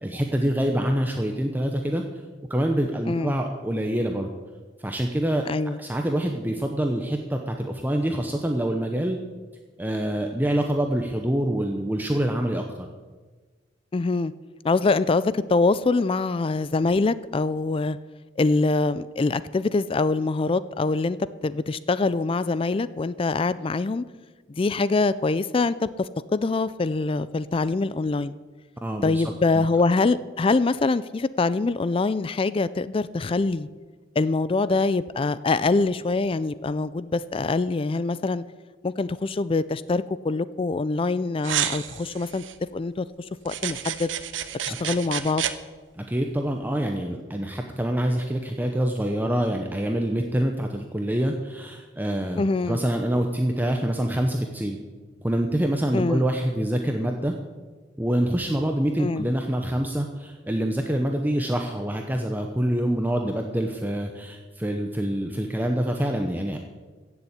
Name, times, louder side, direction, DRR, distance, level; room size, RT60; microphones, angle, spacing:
voice 1, 0.0-2.0 2.5-4.3 4.8-5.5 5.8-9.2 9.8-12.9 28.8-29.7 44.7-44.8 46.0-54.8 55.2-57.3 58.0-66.6, right 1 dB, 10° right, 3 dB, 0.8 m, -26 dB
voice 2, 5.5-5.8 13.9-14.3 14.6-18.0 18.4-24.0 24.5-28.3 29.0-33.7 34.2-38.4 38.8-42.4 42.7-44.1 44.6-45.4 52.4-52.8 55.9-56.2 59.0-59.3, left 3 dB, 30° left, 16 dB, 0.4 m, -24 dB
sound 1, 41.4-42.6 43.5-45.5, right 10 dB, 80° right, 0.8 m, -30 dB
15.5 x 7.1 x 8.2 m, 1.4 s
head